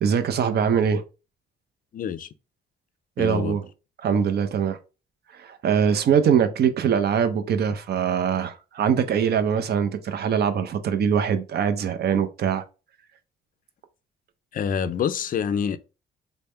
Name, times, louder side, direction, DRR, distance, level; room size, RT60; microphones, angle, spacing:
voice 1, 0.0-1.0 3.2-3.6 4.0-4.8 5.3-12.6, right 7 dB, 55° right, 0.6 m, -22 dB
voice 2, 1.9-2.3 3.2-3.6 14.5-15.8, left 7 dB, 45° left, 0.4 m, -26 dB
3.3 x 2.1 x 4.2 m
cardioid pair, 90°, 20 cm